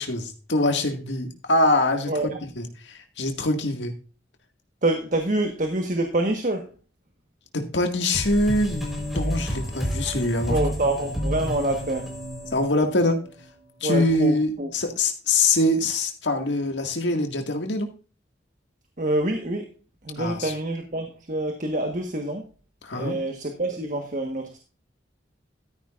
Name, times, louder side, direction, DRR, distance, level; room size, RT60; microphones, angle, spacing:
voice 1, 0.0-2.1 2.4-3.9 7.5-10.6 12.5-13.2 13.8-17.9 20.2-20.5 22.8-23.2, left 2 dB, 75° left, 4 dB, 1.9 m, -24 dB
voice 2, 2.1-2.4 4.8-6.7 10.5-12.1 13.8-14.7 19.0-19.7 20.0-22.4 22.9-24.6, right 1 dB, 45° right, 4 dB, 1.3 m, -26 dB
sound 1, 8.1-13.4, equal, ahead, 3.9 m, -30 dB
13.0 x 10.0 x 2.5 m, 0.35 s
head